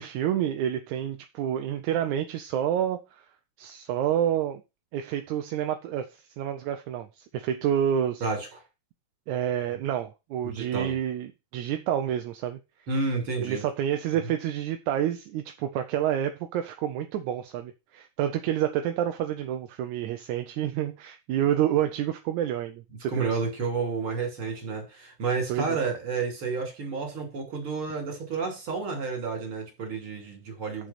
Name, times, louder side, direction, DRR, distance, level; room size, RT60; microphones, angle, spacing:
voice 1, 0.0-3.2 3.6-4.6 4.9-8.2 9.3-12.6 13.4-23.4 25.5-25.8, right 10 dB, 75° right, 1.9 m, -28 dB
voice 2, 8.2-8.6 10.4-10.9 12.9-13.6 23.1-30.9, right 4 dB, 40° right, 3.8 m, -30 dB
6.4 x 6.4 x 5.9 m
omnidirectional pair, 3.8 m